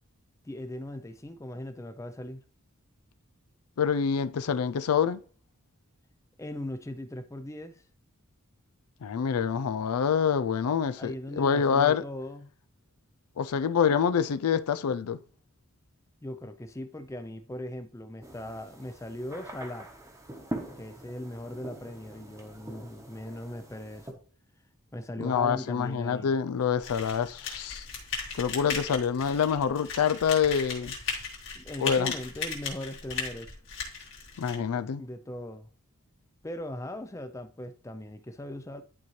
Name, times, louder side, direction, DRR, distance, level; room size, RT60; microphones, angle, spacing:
voice 1, 0.4-2.4 6.4-7.8 11.0-12.5 16.2-19.9 20.8-24.2 24.9-26.4 31.6-33.5 35.0-35.7 36.4-38.8, left 1 dB, 15° left, 0.4 m, -39 dB
voice 2, 3.8-5.2 9.0-12.0 13.4-15.2 25.2-27.9 28.3-30.9 31.8-32.2 34.4-35.0, left 7 dB, 85° left, 0.4 m, -26 dB
sound 1, 18.2-24.1, right 1 dB, 15° right, 1.0 m, -43 dB
sound 2, 26.8-34.6, left 5 dB, 55° left, 2.1 m, -36 dB
11.0 x 4.3 x 3.1 m
head